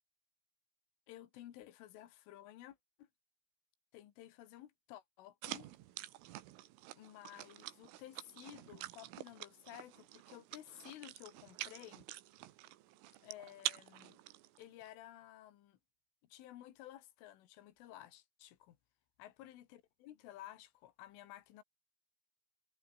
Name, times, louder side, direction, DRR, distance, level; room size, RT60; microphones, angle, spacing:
voice 1, 1.1-3.1 3.9-5.7 6.9-12.1 13.2-14.2 14.6-15.8 16.3-18.8 19.2-21.6, left 13 dB, 80° left, 4.4 m, -54 dB
sound 1, 5.4-14.9, right 15 dB, 90° right, 4.0 m, -47 dB
omnidirectional pair, 5.6 m